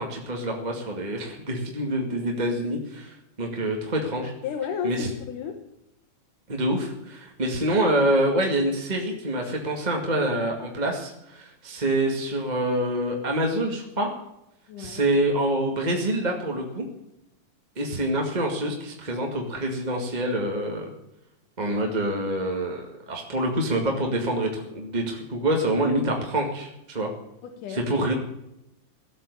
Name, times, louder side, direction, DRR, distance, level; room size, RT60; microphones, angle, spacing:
voice 1, 0.0-4.3 4.8-5.1 6.5-14.1 14.8-16.8 17.7-20.9 21.6-27.1 27.7-28.1, right 1 dB, 15° right, 1 dB, 1.5 m, -26 dB
voice 2, 4.4-5.7 14.7-15.1 27.4-27.9, left 8 dB, 80° left, 5 dB, 2.8 m, -33 dB
16.0 x 8.6 x 9.8 m, 0.86 s
omnidirectional pair, 3.6 m